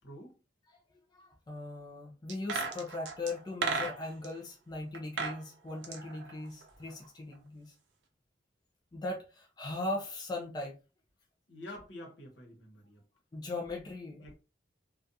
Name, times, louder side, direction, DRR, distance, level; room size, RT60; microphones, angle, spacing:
voice 1, 0.0-0.3 11.5-13.0 14.2-14.4, left 1 dB, 75° left, 1.0 m, -47 dB
voice 2, 1.1-7.7 8.9-10.8 13.3-14.4, left 2 dB, 20° left, 0.3 m, -39 dB
sound 1, 2.3-4.3 4.9-5.4 5.7-7.1 7.3-7.4, right 4 dB, 85° right, 0.5 m, -35 dB
2.4 x 2.2 x 2.6 m
head